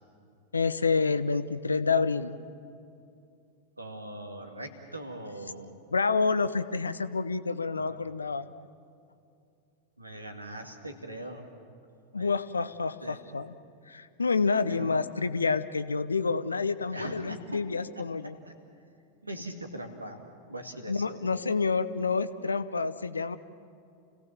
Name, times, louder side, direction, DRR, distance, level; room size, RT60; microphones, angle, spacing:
voice 1, 0.5-2.3 5.9-8.5 12.1-13.6 13.9-18.4 20.9-23.4, left 4 dB, 75° left, 14 dB, 0.7 m, -28 dB
voice 2, 3.8-5.8 7.7-8.0 10.0-11.5 12.1-12.3 13.0-13.2 14.7-15.3 16.9-17.4 18.0-18.5 19.2-20.2 20.5-21.2, right 1 dB, 85° right, 5 dB, 2.0 m, -41 dB
29.0 x 17.5 x 7.2 m, 2.5 s
figure-of-eight pair, 90°, 0 cm